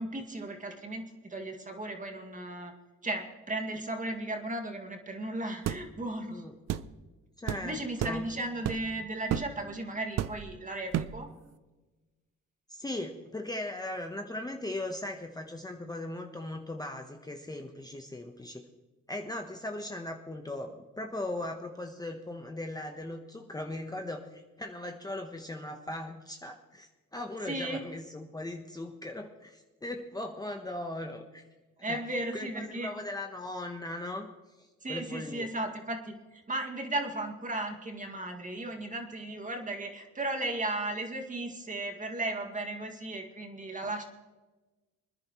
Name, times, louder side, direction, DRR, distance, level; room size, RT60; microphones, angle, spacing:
voice 1, 0.0-2.7 3.0-6.4 7.6-11.3 27.5-27.8 31.8-32.9 34.8-44.0, right 2 dB, 25° right, 3 dB, 2.1 m, -35 dB
sound 1, 5.7-5.8 6.7-6.9 7.5-7.6 8.0-8.2 8.6-8.9 9.3-9.5 10.2-10.5 10.9-11.2, right 11 dB, 60° right, 0.6 m, -31 dB
voice 2, 7.4-8.3 12.7-18.6 19.1-31.4 31.9-32.0 32.3-34.3 34.6-35.5 43.8-43.9, left 1 dB, 15° left, 3 dB, 1.0 m, -38 dB
24.5 x 10.5 x 3.1 m, 1.2 s
cardioid pair, 90°, 30 cm